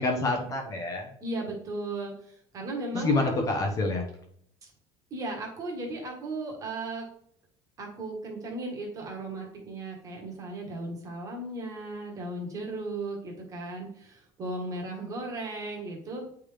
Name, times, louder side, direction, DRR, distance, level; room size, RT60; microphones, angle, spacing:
voice 1, 0.0-1.1 2.9-4.0, left 2 dB, 30° left, 2 dB, 0.9 m, -27 dB
voice 2, 1.2-3.4 5.1-7.0 7.8-16.3, right 2 dB, 30° right, 0 dB, 1.4 m, -36 dB
8.7 x 3.5 x 3.3 m, 0.67 s
cardioid pair, 170°, 11 cm